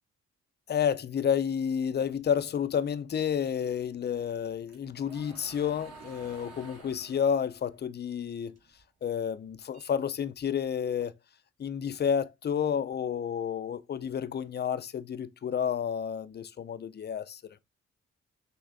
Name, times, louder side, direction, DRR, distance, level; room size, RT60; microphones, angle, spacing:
voice 1, 0.7-8.6 9.0-11.1 11.6-17.4, left 8 dB, 35° left, 0.4 m, -30 dB
sound 1, 4.3-8.8 9.2-10.7, right 3 dB, 55° right, 1.5 m, -52 dB
6.2 x 2.1 x 2.5 m
supercardioid pair, 50°, 31 cm